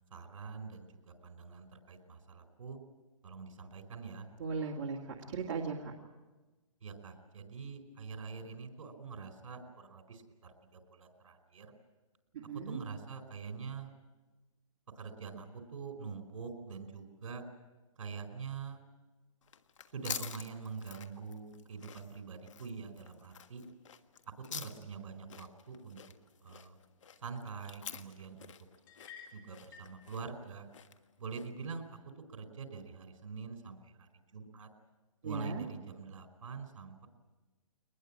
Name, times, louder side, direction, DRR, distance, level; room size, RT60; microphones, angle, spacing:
voice 1, 0.1-2.8 3.2-4.3 6.8-11.7 12.5-13.9 14.9-17.4 18.0-18.8 19.9-23.6 24.4-26.0 26.4-26.8 27.2-28.5 29.3-30.7 31.2-32.0 32.3-34.7 35.2-37.1, right 5 dB, 65° right, 6 dB, 4.9 m, -45 dB
voice 2, 4.4-5.9 12.3-12.8 35.2-35.6, right 5 dB, 35° right, -3 dB, 2.2 m, -37 dB
sound 1, 19.4-31.7, left 8 dB, 60° left, 1.5 m, -48 dB
sound 2, 28.9-30.0, left 6 dB, 35° left, 3.7 m, -52 dB
22.5 x 20.5 x 8.8 m, 1.2 s
hypercardioid pair, 160°, 18 cm